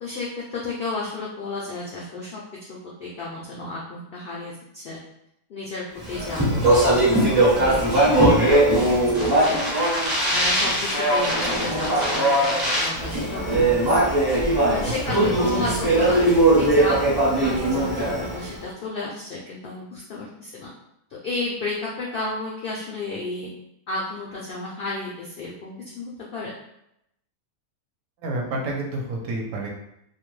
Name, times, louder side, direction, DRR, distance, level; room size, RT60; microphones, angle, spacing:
voice 1, 0.0-2.4 2.7-5.0 5.5-8.6 8.8-9.2 9.5-9.6 10.2-14.0 14.7-16.2 16.6-20.7 21.2-23.5 23.9-26.5, left 3 dB, 80° left, -4 dB, 0.5 m, -32 dB
Speech, 6.1-18.5, right 1 dB, 25° right, 0.5 m, -20 dB
voice 2, 14.9-15.3 15.6-15.7 28.2-29.7, right 2 dB, 75° right, 0 dB, 1.0 m, -29 dB
2.5 x 2.1 x 3.0 m, 0.79 s
omnidirectional pair, 1.5 m